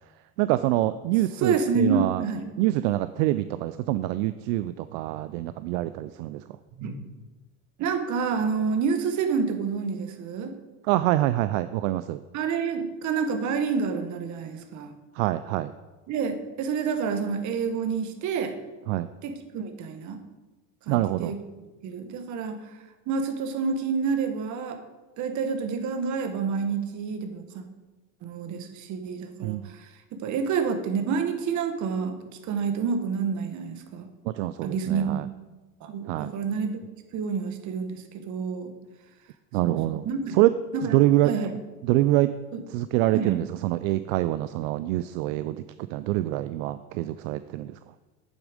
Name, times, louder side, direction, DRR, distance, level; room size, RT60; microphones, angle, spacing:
voice 1, 0.4-2.2 2.6-6.4 10.8-12.2 15.1-15.7 18.9-19.1 20.9-21.4 29.4-29.7 34.2-35.3 36.1-36.3 39.5-40.5 40.8-41.3 41.8-42.3 42.7-47.8, right 16 dB, 65° right, 13 dB, 0.5 m, -25 dB
voice 2, 1.4-2.5 6.8-7.1 7.8-10.5 12.3-14.9 16.1-18.5 19.2-20.2 20.9-21.4 21.8-22.8 23.1-24.8 25.2-27.6 28.2-32.2 32.4-34.1 34.6-35.2 35.8-36.8 37.1-38.7 39.9-40.4 40.7-41.0 41.2-41.5 42.5-42.6 43.1-43.4, right 5 dB, 45° right, 7 dB, 1.3 m, -28 dB
8.6 x 7.3 x 5.0 m, 1.2 s
supercardioid pair, 115°, 42 cm